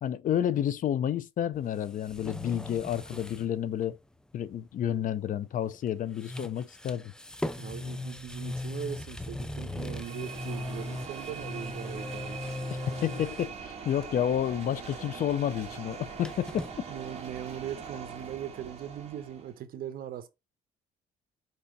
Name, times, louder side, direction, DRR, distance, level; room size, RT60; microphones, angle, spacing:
voice 1, 0.0-4.0 4.3-7.1 13.0-16.6, left 10 dB, 50° left, 0.7 m, -30 dB
sound 1, 1.5-3.5 3.8-3.9 5.6-5.9 6.1-13.5 13.9-14.4 14.6-16.7, left 2 dB, 5° left, 0.5 m, -39 dB
voice 2, 7.6-12.4 16.9-20.3, right 10 dB, 60° right, 1.2 m, -40 dB
sound 2, 9.7-19.6, right 6 dB, 40° right, 2.4 m, -42 dB
4.9 x 4.4 x 5.2 m
cardioid pair, 110°, 17 cm